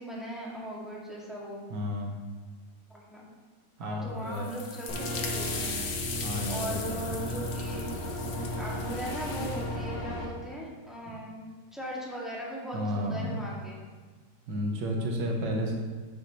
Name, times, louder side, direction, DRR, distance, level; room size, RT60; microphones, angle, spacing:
voice 1, 0.0-1.6 2.9-3.2 3.8-5.8 6.5-7.9 8.6-11.4 11.7-13.8, equal, ahead, -6 dB, 2.2 m, -39 dB
voice 2, 1.7-2.1 3.8-4.5 6.2-7.1 11.1-11.2 12.7-13.3 14.5-15.7, equal, 75° right, 1 dB, 1.8 m, -32 dB
sound 1, 4.3-9.7, left 5 dB, 50° left, 0.9 m, -38 dB
sound 2, 4.9-10.3, equal, 65° left, 2.0 m, -35 dB
8.7 x 8.5 x 3.3 m, 1.4 s
omnidirectional pair, 1.9 m